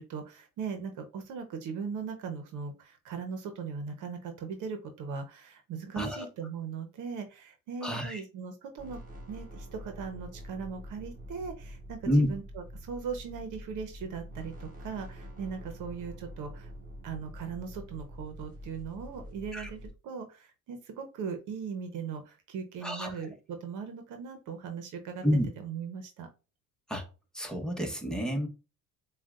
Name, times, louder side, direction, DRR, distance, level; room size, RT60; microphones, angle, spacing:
voice 1, 0.0-9.0 9.3-16.7 17.0-25.2 25.6-26.3, right 6 dB, 65° right, 1.0 m, -39 dB
voice 2, 6.0-6.3 7.8-8.2 12.0-12.3 19.5-19.7 22.8-23.1 25.2-25.5 26.9-27.0 27.3-28.5, equal, ahead, 1.2 m, -29 dB
sound 1, 8.8-19.9, equal, 25° right, 2.4 m, -46 dB
7.2 x 2.5 x 2.5 m
supercardioid pair, 85°, 32 cm